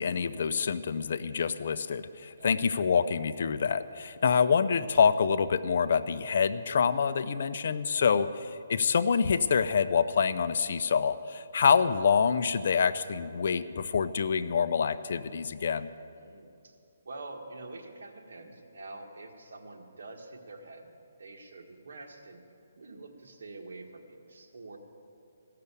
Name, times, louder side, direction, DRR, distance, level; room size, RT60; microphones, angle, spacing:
voice 1, 0.0-8.3 8.7-15.9, left 6 dB, 55° left, 13 dB, 0.5 m, -26 dB
voice 2, 16.2-16.8 17.0-20.9 21.2-22.4 22.8-24.8, right 2 dB, 75° right, 2 dB, 1.6 m, -46 dB
15.5 x 6.7 x 8.3 m, 2.5 s
hypercardioid pair, 165°, 0 cm